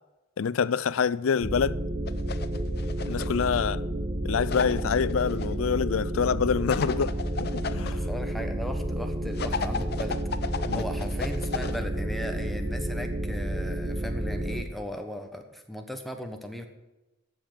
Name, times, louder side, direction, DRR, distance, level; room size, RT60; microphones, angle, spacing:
voice 1, 0.4-1.8 3.1-3.8 4.2-8.1 10.7-10.8, left 6 dB, 90° left, 0.4 m, -26 dB
sound 1, 1.4-14.6, right 1 dB, 35° right, 1.0 m, -31 dB
sound 2, 2.1-3.4 4.5-5.5 6.7-7.9 9.4-11.8, left 5 dB, 55° left, 0.7 m, -34 dB
voice 2, 7.9-10.2 10.7-16.7, equal, ahead, 1.2 m, -37 dB
14.0 x 5.4 x 8.8 m
head